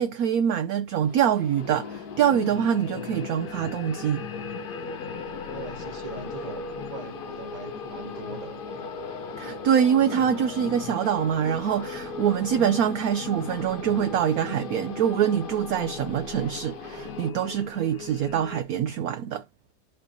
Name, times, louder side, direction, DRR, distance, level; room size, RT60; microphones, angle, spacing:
voice 1, 0.0-4.2 9.4-19.4, right 9 dB, 70° right, 0.9 m, -24 dB
sound 1, 1.0-17.3, left 3 dB, 50° left, 0.7 m, -40 dB
sound 2, 1.6-18.6, left 7 dB, 65° left, 1.2 m, -40 dB
voice 2, 5.3-8.6, right 4 dB, 30° right, 1.2 m, -41 dB
11.5 x 5.4 x 2.7 m
omnidirectional pair, 2.0 m